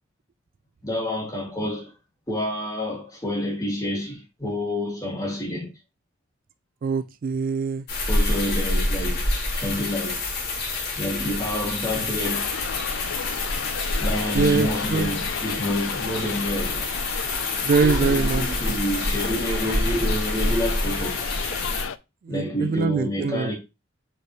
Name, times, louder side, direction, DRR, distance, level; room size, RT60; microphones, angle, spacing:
voice 1, 0.8-1.9 2.3-5.7 8.1-9.2 9.5-10.2 11.0-12.5 14.0-16.9 17.8-21.2 22.3-23.5, left 1 dB, 20° left, 2.5 m, -28 dB
voice 2, 6.8-7.9 14.3-15.1 17.6-18.8 22.3-23.5, right 5 dB, 45° right, 0.3 m, -23 dB
sound 1, 7.9-21.8, left 2 dB, 55° left, 2.5 m, -27 dB
sound 2, 12.2-22.0, left 7 dB, 75° left, 0.4 m, -34 dB
7.8 x 4.5 x 3.2 m
head